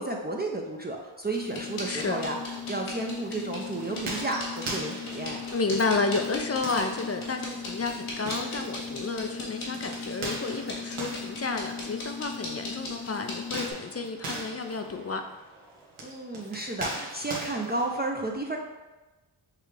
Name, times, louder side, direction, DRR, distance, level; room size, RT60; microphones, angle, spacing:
voice 1, 0.0-5.4 16.0-18.6, right 2 dB, 20° right, 0 dB, 0.5 m, -32 dB
sound 1, 1.3-13.7, left 4 dB, 85° left, 1.2 m, -37 dB
voice 2, 1.9-2.2 5.5-15.2, left 3 dB, 30° left, 5 dB, 0.4 m, -31 dB
sound 2, 3.8-12.4 13.4-18.0, right 2 dB, 80° right, 1.1 m, -40 dB
6.6 x 2.4 x 3.3 m, 1.1 s
cardioid pair, 40°, 49 cm